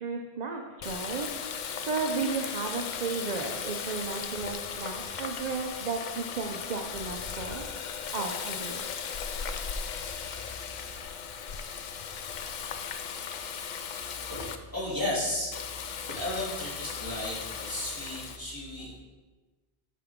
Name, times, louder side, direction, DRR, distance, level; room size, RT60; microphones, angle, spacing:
voice 1, 0.0-7.7 8.1-8.8, right 4 dB, 50° right, 3 dB, 0.6 m, -34 dB
Water tap faucet, 0.8-14.6 15.5-18.4, left 6 dB, 55° left, 0.5 m, -37 dB
voice 2, 10.0-10.4 10.8-10.9 13.9-19.0, left 1 dB, 20° left, -9 dB, 2.7 m, -35 dB
8.3 x 5.9 x 3.6 m, 1.3 s
omnidirectional pair, 1.1 m